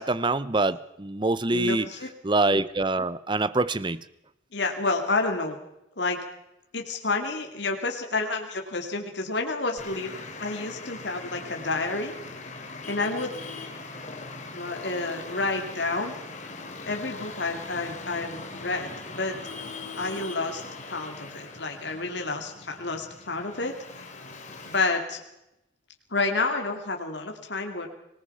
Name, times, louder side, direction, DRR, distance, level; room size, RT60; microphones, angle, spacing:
voice 1, 0.0-1.9 2.2-4.0, right 2 dB, 25° right, 17 dB, 0.7 m, -25 dB
voice 2, 1.5-2.1 4.5-5.6 6.0-6.2 6.7-12.1 12.9-13.3 14.5-16.1 16.9-19.4 20.0-24.0 24.6-25.2 26.1-28.0, left 3 dB, 65° left, 3 dB, 2.6 m, -29 dB
Traffic noise roadway noise, 9.8-24.8, left 3 dB, 40° left, 3.0 m, -41 dB
25.5 x 19.0 x 5.7 m, 0.86 s
head